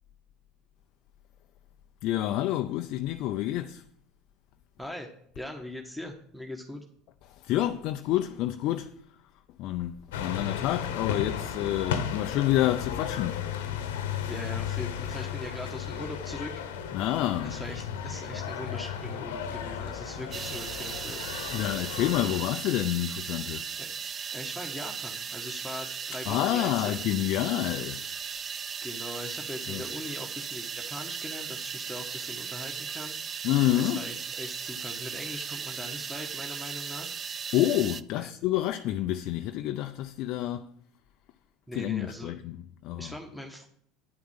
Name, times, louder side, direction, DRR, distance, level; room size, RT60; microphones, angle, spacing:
voice 1, 2.0-3.8 7.3-8.9 9.6-13.4 16.9-17.5 21.5-23.7 26.3-28.1 29.7-29.8 33.4-34.0 37.5-40.7 41.7-43.1, left 13 dB, 60° left, 0.5 m, -28 dB
voice 2, 4.8-5.1 5.3-6.8 14.3-16.5 17.4-21.2 23.8-23.9 24.3-27.0 28.8-33.2 33.7-37.1 38.1-38.3 41.7-42.4 43.0-43.7, left 1 dB, ahead, 1.5 m, -40 dB
sound 1, 10.1-22.4, left 8 dB, 80° left, 1.0 m, -35 dB
sound 2, 20.3-38.0, right 6 dB, 35° right, 0.5 m, -37 dB
9.7 x 5.9 x 7.3 m
hypercardioid pair, 80°, 0 cm